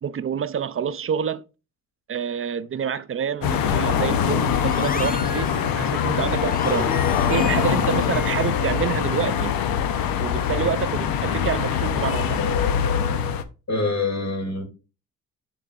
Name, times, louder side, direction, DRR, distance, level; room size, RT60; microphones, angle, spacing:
voice 1, 0.0-1.5 2.1-7.0 7.3-9.6 10.2-12.5, right 8 dB, 40° right, 0.6 m, -27 dB
sound 1, 3.4-13.4, left 8 dB, 75° left, 0.8 m, -23 dB
sound 2, 4.4-9.3, left 5 dB, 25° left, 0.7 m, -33 dB
voice 2, 13.7-14.6, left 3 dB, 50° left, 2.7 m, -25 dB
11.5 x 3.9 x 2.5 m
supercardioid pair, 65°, 35 cm